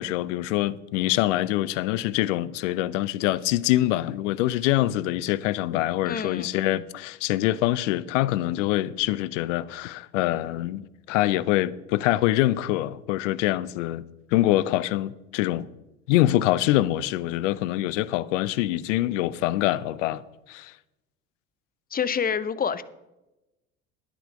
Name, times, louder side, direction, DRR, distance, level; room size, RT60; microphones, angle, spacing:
voice 1, 0.0-14.0 14.3-15.7 16.1-20.2 20.5-20.7, left 15 dB, 70° left, 0.7 m, -25 dB
voice 2, 6.0-6.6 21.9-22.8, left 7 dB, 25° left, 0.7 m, -27 dB
10.5 x 10.0 x 4.9 m
hypercardioid pair, 70°, 38 cm